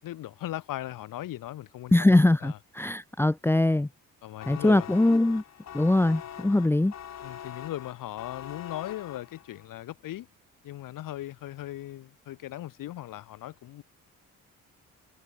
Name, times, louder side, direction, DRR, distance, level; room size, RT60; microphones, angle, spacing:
voice 1, 0.0-2.6 4.2-4.9 7.2-10.3 10.6-13.8, left 14 dB, 90° left, 6.5 m, -38 dB
voice 2, 1.9-3.9 4.5-5.4 5.7-6.9, left 2 dB, 5° left, 0.8 m, -22 dB
sound 1, 4.4-9.7, left 10 dB, 55° left, 2.5 m, -43 dB
cardioid pair, 130°, 32 cm